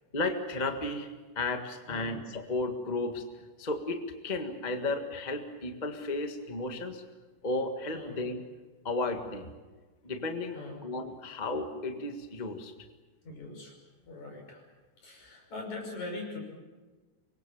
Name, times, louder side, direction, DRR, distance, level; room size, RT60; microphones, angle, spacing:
voice 1, 0.1-3.2 3.6-7.0 7.4-8.4 8.8-9.5 10.0-12.7, left 2 dB, 20° left, 5 dB, 1.1 m, -34 dB
voice 2, 13.2-13.8 14.0-14.7 15.0-16.4, left 2 dB, 65° left, 2 dB, 7.1 m, -41 dB
25.5 x 22.5 x 7.2 m, 1.3 s
omnidirectional pair, 3.6 m